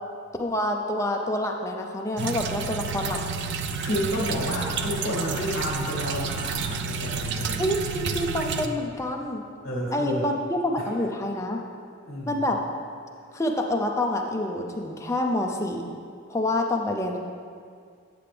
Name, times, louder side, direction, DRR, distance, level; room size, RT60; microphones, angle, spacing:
voice 1, 0.4-3.2 7.6-9.4 9.9-11.6 12.3-12.6 13.3-15.9 16.3-17.2, left 1 dB, 15° left, 1 dB, 0.5 m, -27 dB
sound 1, 2.2-8.7, right 5 dB, 55° right, 0.4 m, -30 dB
voice 2, 3.8-7.6 9.6-10.3 10.8-10.9 12.0-12.4, equal, 50° left, -6 dB, 1.7 m, -30 dB
9.3 x 6.8 x 3.4 m, 2.2 s
head